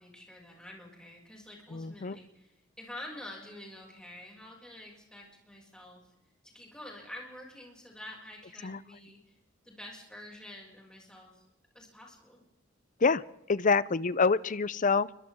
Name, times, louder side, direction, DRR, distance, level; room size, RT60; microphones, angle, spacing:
voice 1, 0.0-6.0 6.4-9.3 9.6-11.4 11.7-12.4, left 1 dB, 5° left, -2 dB, 6.7 m, -48 dB
voice 2, 1.7-2.2 8.6-8.8 13.0-13.2 13.5-15.1, left 4 dB, 40° left, 17 dB, 0.6 m, -26 dB
30.0 x 24.0 x 3.7 m, 0.94 s
head